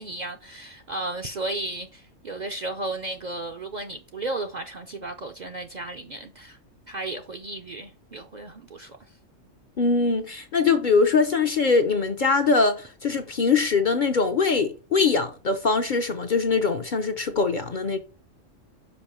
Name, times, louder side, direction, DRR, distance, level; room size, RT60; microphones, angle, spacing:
voice 1, 0.0-6.6 6.9-9.0, right 2 dB, 50° right, 0.6 m, -34 dB
voice 2, 9.8-18.0, left 4 dB, 50° left, 0.7 m, -22 dB
5.4 x 5.3 x 4.3 m
omnidirectional pair, 1.3 m